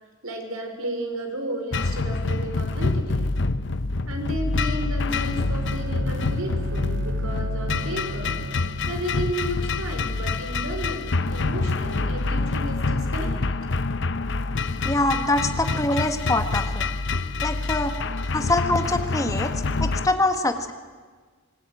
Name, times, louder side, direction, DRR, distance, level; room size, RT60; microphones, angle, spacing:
voice 1, 0.2-3.4 4.1-8.4 8.9-13.3 15.4-15.5, equal, 85° right, 4 dB, 4.9 m, -33 dB
sound 1, 1.7-20.1, left 3 dB, 55° left, 0.8 m, -26 dB
Bowed string instrument, 5.0-9.1, right 3 dB, 55° right, 0.7 m, -36 dB
voice 2, 14.8-16.8 17.4-17.9 18.3-19.5 19.8-20.7, left 2 dB, 15° left, 6 dB, 1.6 m, -24 dB
25.0 x 20.0 x 9.3 m, 1.5 s
head